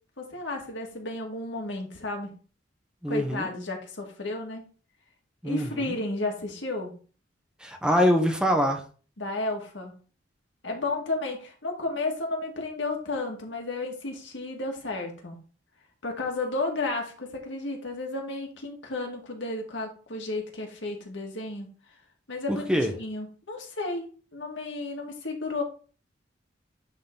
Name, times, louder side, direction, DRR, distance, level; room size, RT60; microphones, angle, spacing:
voice 1, 0.2-2.3 3.1-4.6 5.4-6.9 9.2-9.9 10.6-15.4 16.0-21.7 22.3-22.7 23.0-24.1 24.3-25.6, left 2 dB, 80° left, 1 dB, 1.9 m, -32 dB
voice 2, 3.0-3.5 5.4-5.9 7.6-8.8 22.5-22.9, equal, 5° right, 4 dB, 0.9 m, -24 dB
9.8 x 3.8 x 3.9 m, 0.39 s
head